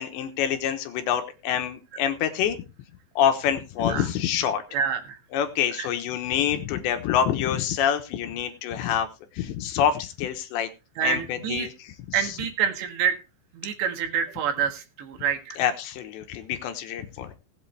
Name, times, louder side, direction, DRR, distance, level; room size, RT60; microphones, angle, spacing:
voice 1, 0.0-2.6 3.2-4.6 5.3-9.1 9.3-10.7 11.0-12.3 15.6-17.3, left 9 dB, 75° left, 8 dB, 3.1 m, -26 dB
voice 2, 4.7-5.2 5.8-5.9 11.0-11.7 12.1-13.2 13.5-15.6, right 7 dB, 65° right, 6 dB, 3.7 m, -27 dB
19.0 x 8.5 x 3.3 m, 0.30 s
omnidirectional pair, 5.6 m